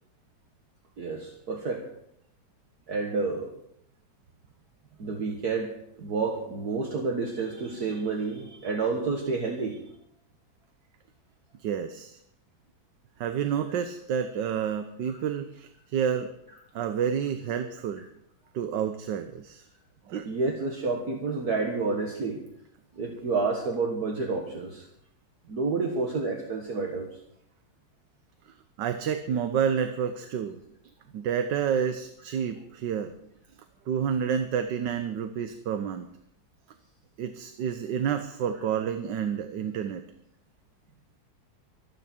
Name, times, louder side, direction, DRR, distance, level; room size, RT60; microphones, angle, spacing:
voice 1, 1.0-1.8 2.9-3.5 5.0-9.8 20.3-22.4 23.0-24.8 25.5-27.1, right 4 dB, 55° right, 1 dB, 2.1 m, -29 dB
voice 2, 11.6-12.2 13.2-16.3 16.7-18.0 18.5-19.6 20.1-20.3 28.8-30.6 31.1-33.1 33.9-36.1 37.2-40.0, right 8 dB, 75° right, 8 dB, 1.5 m, -29 dB
24.0 x 10.0 x 4.5 m, 0.74 s
omnidirectional pair, 2.0 m